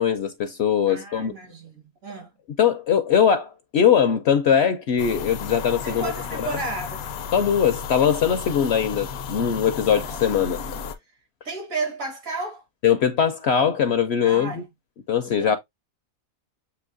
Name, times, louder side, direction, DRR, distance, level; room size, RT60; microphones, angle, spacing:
voice 1, 0.0-1.3 2.6-6.1 6.4-6.6 7.3-10.6 12.8-14.6 15.1-15.6, left 8 dB, 65° left, 0.7 m, -21 dB
voice 2, 0.9-2.3 5.8-7.1 9.8-10.3 10.6-10.8 11.4-12.6 14.2-14.7 15.3-15.6, right 3 dB, 70° right, 2.3 m, -33 dB
sound 1, 5.0-10.9, left 6 dB, 80° left, 1.0 m, -33 dB
6.9 x 2.8 x 2.5 m
omnidirectional pair, 1.5 m